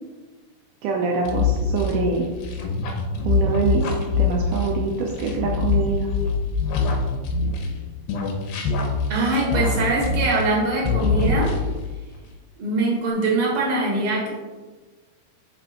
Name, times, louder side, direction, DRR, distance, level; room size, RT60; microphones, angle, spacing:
voice 1, 0.8-2.3 3.3-3.9 4.2-6.1 9.5-9.6, right 4 dB, 80° right, 0 dB, 1.9 m, -24 dB
sound 1, 1.2-7.8 8.1-10.6 10.8-11.9, left 4 dB, 90° left, 2.8 m, -24 dB
voice 2, 9.1-11.5 12.6-14.3, right 2 dB, 45° right, -3 dB, 2.3 m, -22 dB
5.9 x 5.7 x 3.7 m, 1.3 s
omnidirectional pair, 4.2 m